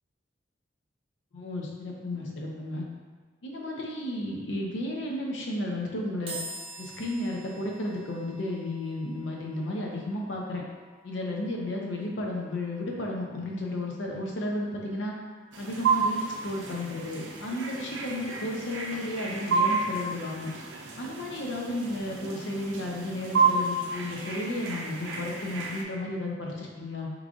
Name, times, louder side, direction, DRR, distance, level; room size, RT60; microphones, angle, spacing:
voice 1, 1.3-2.8 3.4-6.4 6.8-10.6 11.0-15.1 15.6-20.5 21.0-27.1, left 1 dB, 75° left, -1 dB, 0.6 m, -33 dB
sound 1, 6.3-19.6, right 1 dB, 30° right, 0.7 m, -49 dB
sound 2, 15.5-25.8, right 4 dB, 80° right, 0.5 m, -31 dB
3.2 x 2.5 x 3.5 m, 1.5 s
head